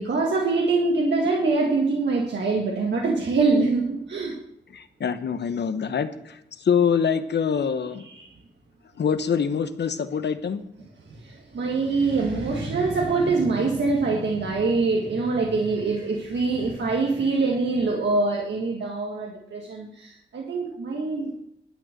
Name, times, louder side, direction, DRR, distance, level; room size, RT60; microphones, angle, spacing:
voice 1, 0.0-4.4 8.0-8.3 11.1-21.4, right 3 dB, 75° right, 0 dB, 1.9 m, -24 dB
voice 2, 4.7-8.1 9.0-10.6, left 7 dB, 70° left, 11 dB, 1.0 m, -25 dB
11.5 x 9.2 x 6.7 m, 0.80 s
wide cardioid pair, 155°, 18 cm